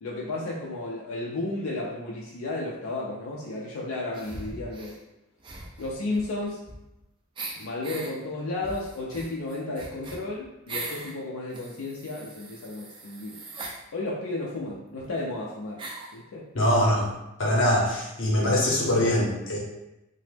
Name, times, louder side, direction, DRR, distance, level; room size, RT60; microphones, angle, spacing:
voice 1, 0.0-5.0 5.8-6.6 7.6-13.4 13.9-15.8 16.1-16.5, left 2 dB, 90° left, -3 dB, 0.4 m, -33 dB
sound 1, 4.1-5.0 5.4-7.0 7.3-8.1 8.6-11.1 11.5-13.8 14.7-14.8 15.0-15.1 15.8-16.2, right 2 dB, 25° right, 0.3 m, -40 dB
voice 2, 16.5-17.1 17.4-19.6, left 1 dB, 65° left, -2 dB, 0.7 m, -23 dB
2.9 x 2.0 x 3.3 m, 0.92 s
head